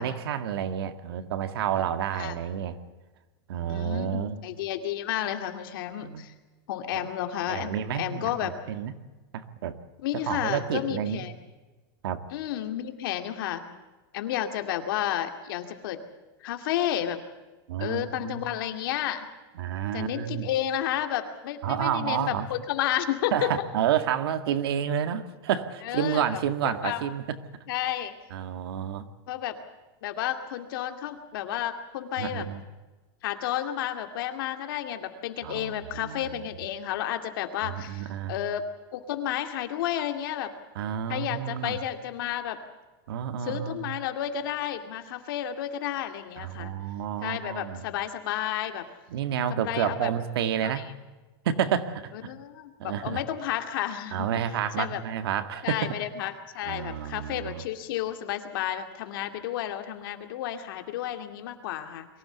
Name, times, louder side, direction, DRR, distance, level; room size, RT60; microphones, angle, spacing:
voice 1, 0.0-2.8 3.5-4.4 6.0-6.2 6.9-7.1 7.5-9.0 9.3-9.8 10.3-11.2 12.0-12.2 17.7-18.4 19.6-20.5 21.6-22.5 23.3-27.4 28.3-29.1 32.2-32.6 35.4-36.4 37.6-38.4 40.8-41.8 43.1-43.9 46.4-47.8 49.1-50.9 51.5-52.1 52.8-53.2 54.1-56.0 56.7-57.6, right 9 dB, 75° right, 9 dB, 2.0 m, -30 dB
voice 2, 3.7-6.3 6.7-8.5 10.0-11.3 12.3-13.6 14.1-16.0 16.4-17.2 17.8-19.3 19.9-23.5 25.8-27.0 27.7-28.1 29.3-29.6 30.0-32.4 33.2-40.5 41.1-42.6 43.4-46.7 47.2-48.8 49.5-50.1 50.6-50.8 52.2-54.4 54.8-55.0 55.6-62.1, left 11 dB, 60° left, 6 dB, 2.4 m, -31 dB
23.5 x 16.0 x 8.1 m, 1.2 s
supercardioid pair, 165°, 13 cm